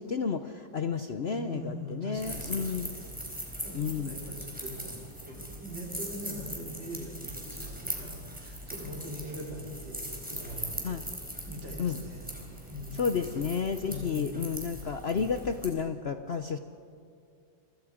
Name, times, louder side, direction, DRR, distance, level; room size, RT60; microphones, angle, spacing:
voice 1, 0.0-2.9 3.7-4.1 10.8-11.0 11.8-12.0 13.0-16.6, left 6 dB, 65° left, 8 dB, 0.6 m, -31 dB
voice 2, 1.3-4.9 5.2-11.0 11.4-13.3 13.9-14.4, equal, 70° right, -3 dB, 5.6 m, -42 dB
sound 1, 2.1-15.7, equal, 5° right, 4.2 m, -40 dB
29.0 x 25.0 x 5.1 m, 2.4 s
omnidirectional pair, 2.1 m